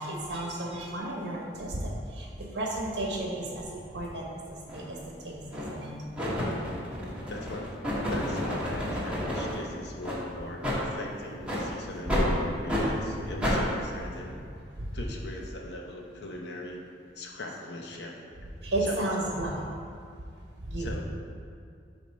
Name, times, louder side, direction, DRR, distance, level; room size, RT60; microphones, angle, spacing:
voice 1, 0.0-6.0 6.2-6.4 9.0-9.1 14.8-14.9 18.6-19.7 20.6-20.9, right 1 dB, 70° right, -2 dB, 1.0 m, -33 dB
sound 1, 4.7-4.8 5.5-5.8 6.2-9.6 10.0-10.2 10.6-10.8 11.4-11.6 12.1-12.3 12.7-12.9 13.4-13.6, equal, 5° right, 1.3 m, -30 dB
voice 2, 7.3-14.3 14.9-16.8 17.2-18.1 18.8-19.0 20.8-21.0, left 1 dB, 70° left, 0 dB, 0.8 m, -41 dB
8.2 x 2.8 x 5.5 m, 2.3 s
head